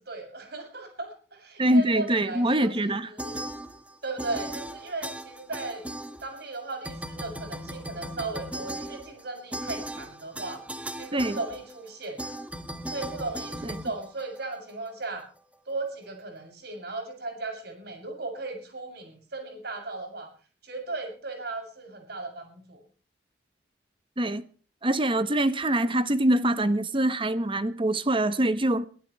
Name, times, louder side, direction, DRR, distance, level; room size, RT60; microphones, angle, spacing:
voice 1, 0.0-3.4 4.0-5.9 6.2-10.6 10.9-12.4 12.9-15.2 15.7-20.3 20.6-22.8, right 3 dB, 65° right, 7.1 m, -36 dB
voice 2, 1.6-3.1 11.1-11.4 13.6-13.8 24.2-24.4 24.8-28.9, right 1 dB, 30° right, 1.1 m, -24 dB
sound 1, 3.2-6.5 6.8-14.7, right 1 dB, 10° right, 1.8 m, -37 dB
23.0 x 16.0 x 3.2 m
head